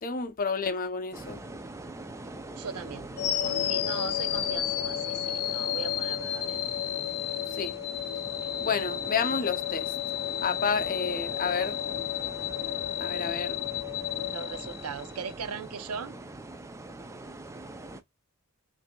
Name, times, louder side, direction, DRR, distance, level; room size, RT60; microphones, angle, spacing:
voice 1, 0.0-1.4 7.6-7.8 8.6-9.9 10.4-11.8 13.0-13.6, left 5 dB, 40° left, 0.6 m, -30 dB
sound 1, 1.1-18.0, right 2 dB, 15° right, 0.3 m, -43 dB
voice 2, 2.5-3.1 3.4-6.6 14.2-16.1, right 6 dB, 80° right, 0.6 m, -39 dB
sound 2, 3.2-15.3, left 11 dB, 80° left, 0.6 m, -32 dB
5.6 x 2.6 x 2.2 m
head